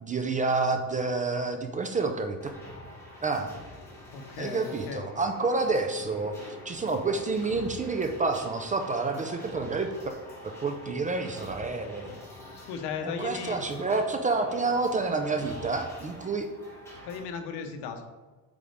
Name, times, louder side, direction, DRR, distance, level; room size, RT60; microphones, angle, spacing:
voice 1, 0.0-2.5 3.2-3.5 4.4-10.2 10.4-12.2 13.0-16.5, right 3 dB, 20° right, 6 dB, 0.4 m, -29 dB
sound 1, 2.4-17.2, left 1 dB, 5° left, 1.7 m, -46 dB
voice 2, 4.1-5.1 12.6-13.6 17.0-18.0, left 6 dB, 80° left, 6 dB, 1.1 m, -36 dB
8.4 x 5.2 x 3.5 m, 1.3 s
cardioid pair, 165°, 40 cm